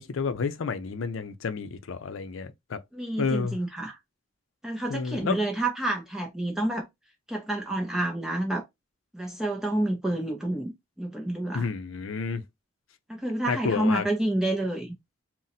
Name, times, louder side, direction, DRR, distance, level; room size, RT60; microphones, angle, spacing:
voice 1, 0.0-2.8 3.2-3.6 4.9-5.4 11.5-12.4 13.5-14.0, left 5 dB, 85° left, 0.5 m, -30 dB
voice 2, 2.9-4.0 4.6-6.9 7.3-8.6 9.1-10.7 11.0-11.7 13.1-15.0, right 1 dB, 5° right, 0.4 m, -29 dB
2.7 x 2.1 x 3.9 m
head